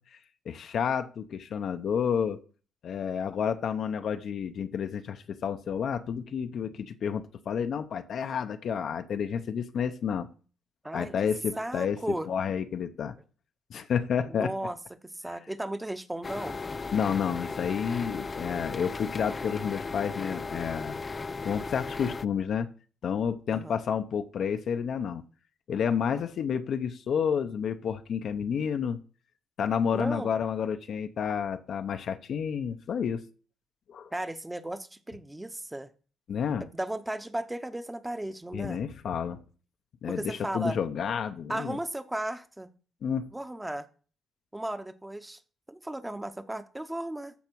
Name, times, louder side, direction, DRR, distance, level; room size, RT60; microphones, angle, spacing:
voice 1, 0.5-2.4 2.8-10.3 10.9-13.2 13.7-14.5 16.9-21.0 21.4-22.7 23.0-25.2 25.7-29.0 29.6-33.2 33.9-34.1 36.3-36.6 38.5-39.4 40.0-41.8 43.0-43.3, left 7 dB, 60° left, 0.7 m, -30 dB
voice 2, 11.5-12.3 14.3-14.8 15.1-16.6 23.5-23.8 29.9-30.3 34.1-35.9 36.6-38.8 40.1-40.8 41.5-42.7 43.3-43.9 44.5-45.4 45.7-47.3, right 1 dB, 10° right, 0.9 m, -35 dB
sound 1, 16.2-22.2, left 4 dB, 30° left, 0.4 m, -36 dB
14.5 x 4.8 x 4.6 m
cardioid pair, 90°, 0 cm